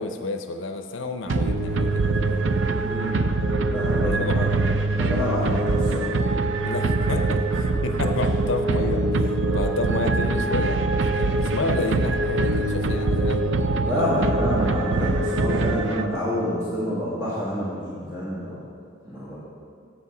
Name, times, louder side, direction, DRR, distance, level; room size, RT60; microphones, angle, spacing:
voice 1, 0.0-2.4 4.0-4.5 6.6-10.8 11.1-14.1, left 3 dB, 75° left, 7 dB, 0.6 m, -30 dB
sound 1, 1.3-16.3, right 2 dB, 65° right, 0.5 m, -23 dB
voice 2, 2.8-3.3 3.7-4.6 4.9-6.2 8.0-8.1 13.9-18.6 19.0-19.4, equal, 15° right, -10 dB, 1.8 m, -28 dB
8.5 x 8.2 x 4.9 m, 2.3 s
head